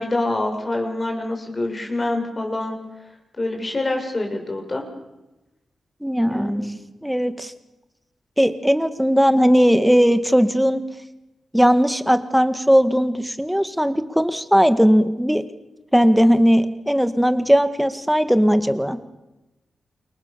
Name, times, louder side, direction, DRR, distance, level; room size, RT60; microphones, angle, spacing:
voice 1, 0.0-2.8 3.4-4.9 6.3-6.7, left 2 dB, 30° left, 3 dB, 7.0 m, -25 dB
voice 2, 6.0-6.5 7.0-7.5 8.4-10.8 11.5-15.4 15.9-19.0, equal, ahead, 10 dB, 2.0 m, -18 dB
29.0 x 28.5 x 7.0 m, 1.0 s
wide cardioid pair, 110°, 0 cm